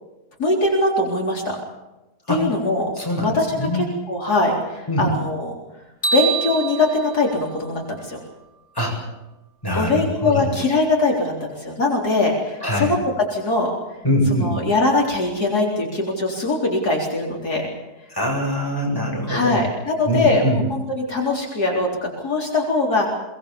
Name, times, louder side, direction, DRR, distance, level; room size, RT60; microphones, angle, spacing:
voice 1, 0.4-1.6 2.3-2.9 3.2-5.5 6.1-8.2 9.7-13.0 13.3-13.7 14.4-17.7 19.3-23.1, left 2 dB, 65° left, -1 dB, 4.5 m, -21 dB
voice 2, 2.9-3.8 4.9-5.1 8.7-9.0 9.6-10.5 12.6-12.9 14.0-14.5 18.1-19.6 20.0-20.6, equal, 10° left, -2 dB, 7.6 m, -23 dB
sound 1, 6.0-8.3, right 6 dB, 35° left, 6.1 m, -27 dB
23.5 x 20.5 x 7.2 m, 1.0 s
omnidirectional pair, 1.8 m